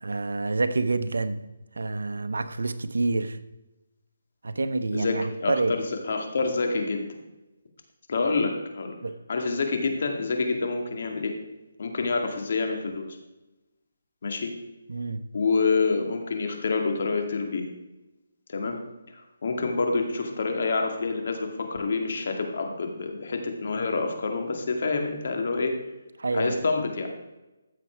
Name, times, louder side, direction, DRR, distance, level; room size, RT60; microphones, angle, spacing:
voice 1, 0.0-1.4 1.8-3.4 4.4-5.7 9.0-9.1 14.9-15.3 26.2-26.6, right 3 dB, 80° right, 12 dB, 0.9 m, -27 dB
voice 2, 4.9-7.2 8.1-9.0 9.3-11.4 11.8-13.2 14.2-14.6 15.3-17.7 18.5-18.9 19.1-25.8 26.3-27.1, left 4 dB, 55° left, 4 dB, 2.2 m, -27 dB
14.5 x 7.5 x 4.6 m, 1.0 s
hypercardioid pair, 160°, 0 cm